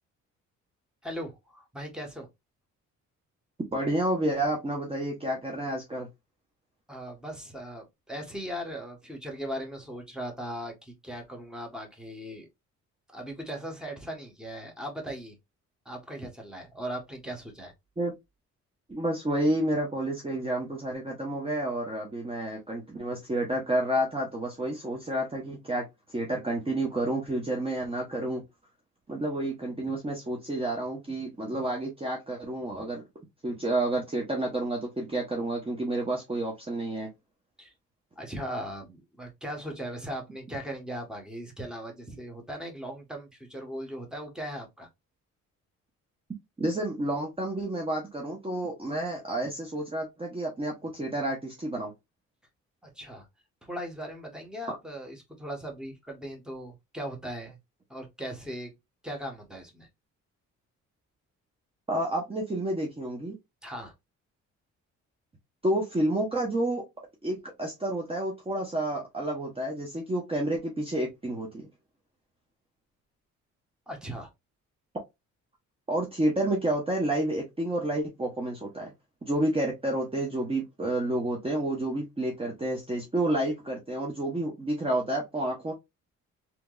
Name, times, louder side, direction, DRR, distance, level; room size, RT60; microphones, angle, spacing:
voice 1, 1.0-2.3 6.9-12.5 13.1-15.4 15.8-17.7 37.6-37.7 38.2-44.9 52.9-53.3 53.6-57.6 57.9-58.7 59.0-59.9 63.6-63.9 73.9-74.3, equal, ahead, 1.3 m, -38 dB
voice 2, 3.7-6.1 18.0-18.1 18.9-25.8 26.1-28.4 29.1-33.0 33.4-37.1 46.6-51.9 61.9-63.4 65.6-66.8 67.2-71.7 75.9-78.9 79.2-85.7, right 1 dB, 20° right, 0.9 m, -30 dB
3.3 x 3.0 x 2.4 m
cardioid pair, 90°, 30 cm